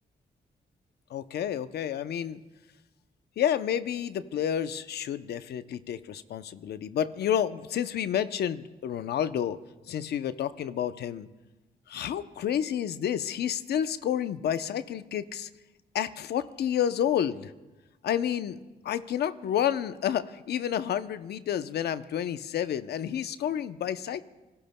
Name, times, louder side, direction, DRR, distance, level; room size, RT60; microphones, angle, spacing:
voice 1, 1.1-2.4 3.4-9.6 9.9-11.3 11.9-15.5 15.9-17.5 18.0-18.6 18.8-24.3, left 9 dB, 80° left, 12 dB, 0.7 m, -30 dB
28.0 x 20.0 x 2.2 m, 1.1 s
cardioid pair, 65°, 17 cm